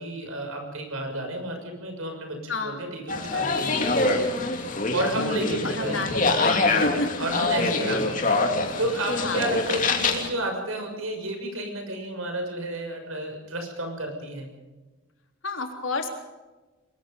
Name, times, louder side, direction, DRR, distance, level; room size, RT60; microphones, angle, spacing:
voice 1, 0.0-3.0 3.3-4.2 4.5-6.3 7.2-8.5 8.8-14.5, right 1 dB, 90° right, 4 dB, 6.5 m, -31 dB
voice 2, 2.5-2.8 5.2-6.5 6.8-7.3 9.2-9.4 15.4-16.1, left 2 dB, 70° left, 3 dB, 3.7 m, -30 dB
sound 1, 3.1-10.3, left 3 dB, 40° left, 2.9 m, -25 dB
23.0 x 22.0 x 5.4 m, 1.2 s
head